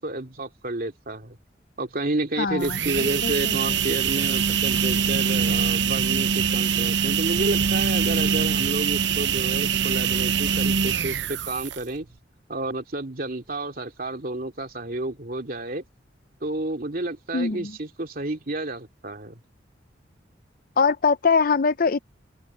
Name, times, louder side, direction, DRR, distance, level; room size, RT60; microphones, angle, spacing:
voice 1, 0.0-1.4 1.8-12.1 12.5-15.8 16.4-19.4, right 2 dB, 50° right, 2.7 m, -30 dB
voice 2, 2.4-3.8 17.3-17.8 20.8-22.0, left 5 dB, 50° left, 0.6 m, -23 dB
sound 1, 2.5-12.0, right 7 dB, 80° right, 0.7 m, -23 dB
open air
head